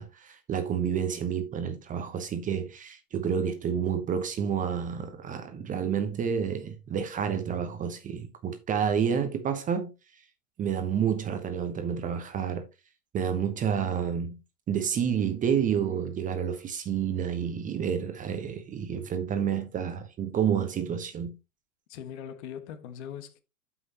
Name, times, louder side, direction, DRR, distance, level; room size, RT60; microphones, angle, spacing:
voice 1, 0.0-9.9 10.6-12.7 13.1-14.4 14.7-21.4, right 7 dB, 15° right, 1.0 m, -29 dB
voice 2, 21.9-23.4, left 9 dB, 45° left, 1.6 m, -40 dB
12.0 x 5.8 x 2.9 m
figure-of-eight pair, 110°, 45 cm